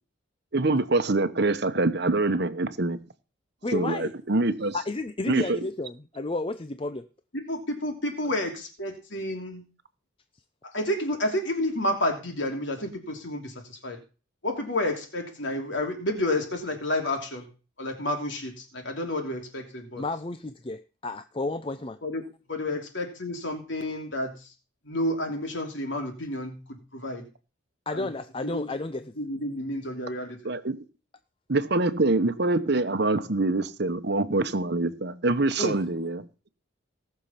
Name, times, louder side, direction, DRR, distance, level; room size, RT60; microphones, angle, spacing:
voice 1, 0.5-3.0 3.7-4.8 5.3-5.6 30.4-30.8 31.5-36.2, right 2 dB, 55° right, 1.0 m, -25 dB
voice 2, 3.6-4.1 4.7-7.1 20.0-22.0 27.9-29.1 35.6-35.8, left 2 dB, 25° left, 0.5 m, -32 dB
voice 3, 7.3-9.6 10.6-14.0 14.4-17.5 17.8-20.0 22.0-22.2 22.5-24.3 24.8-27.2 27.9-28.1 28.4-28.7 29.2-30.4, left 1 dB, 65° left, 3.1 m, -30 dB
18.0 x 6.7 x 5.8 m
head